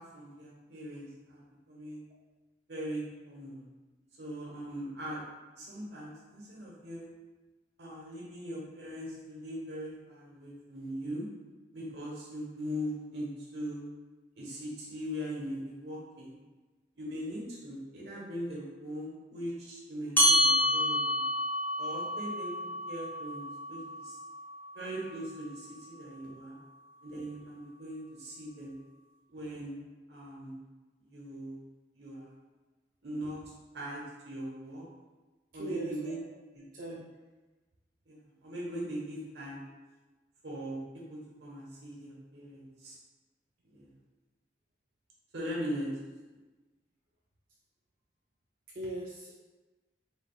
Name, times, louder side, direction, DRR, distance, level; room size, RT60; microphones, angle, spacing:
voice 1, 0.0-1.4 1.7-2.0 2.7-3.7 4.2-5.2 5.6-7.1 7.8-11.3 11.7-13.8 14.4-16.4 17.0-21.2 21.8-22.5 22.9-24.2 24.7-26.6 27.0-28.7 29.3-29.8 30.1-30.6 31.0-31.6 31.9-32.3 33.0-33.4 33.7-34.8 35.5-36.2 36.5-36.6 38.1-39.6 40.4-43.0 43.6-43.9 45.3-45.9, equal, 75° right, -4 dB, 1.1 m, -40 dB
sound 1, 20.2-25.0, equal, 10° left, 0.6 m, -29 dB
voice 2, 35.6-36.2 36.7-37.0 48.7-49.4, right 1 dB, 50° right, -5 dB, 0.5 m, -39 dB
3.8 x 3.5 x 2.4 m, 1.2 s
head